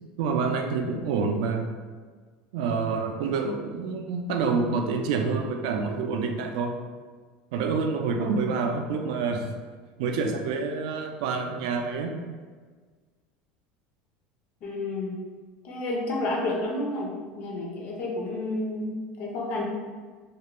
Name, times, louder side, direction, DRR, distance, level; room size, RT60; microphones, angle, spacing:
voice 1, 0.0-1.6 2.5-6.7 7.5-9.4 10.0-12.2, right 4 dB, 75° right, 4 dB, 0.3 m, -27 dB
voice 2, 14.6-15.2 15.6-19.6, left 2 dB, 40° left, -1 dB, 0.5 m, -30 dB
2.4 x 2.1 x 3.0 m, 1.5 s
cardioid pair, 165°, 4 cm